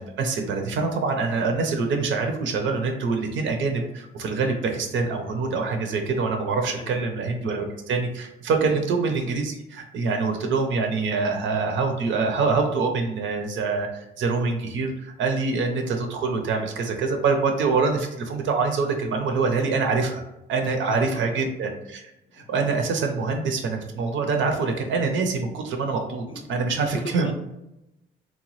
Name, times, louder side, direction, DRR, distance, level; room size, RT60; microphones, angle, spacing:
voice 1, 0.0-13.9 14.2-20.2 20.5-22.0 22.3-26.2 26.5-27.3, right 4 dB, 70° right, 4 dB, 0.6 m, -25 dB
voice 2, 6.7-7.0 8.6-8.8 20.6-21.1 22.3-22.5 26.3-26.4 26.7-27.3, left 1 dB, 25° left, 4 dB, 0.4 m, -39 dB
2.9 x 2.1 x 3.0 m, 0.91 s
cardioid pair, 90°, 20 cm